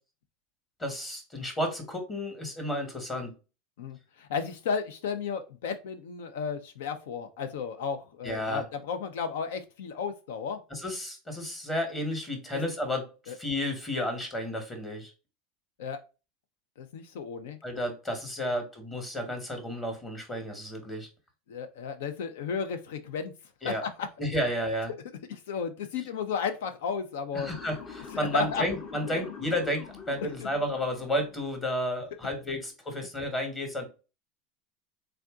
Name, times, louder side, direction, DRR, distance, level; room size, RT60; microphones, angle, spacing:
voice 1, 0.8-3.3 8.2-8.6 10.7-15.1 17.6-21.1 23.6-23.8 24.2-24.9 27.3-33.9, equal, 20° left, 1.2 m, -32 dB
voice 2, 3.8-10.6 12.5-12.6 13.3-13.4 15.8-16.0 16.8-17.6 21.5-23.3 23.6-24.1 25.3-27.5 28.3-28.6 30.4-30.5, left 6 dB, 85° left, 0.7 m, -33 dB
Motor vehicle (road) / Siren, 27.4-31.6, left 6 dB, 45° left, 0.9 m, -44 dB
3.5 x 2.6 x 3.6 m
supercardioid pair, 120°, 0 cm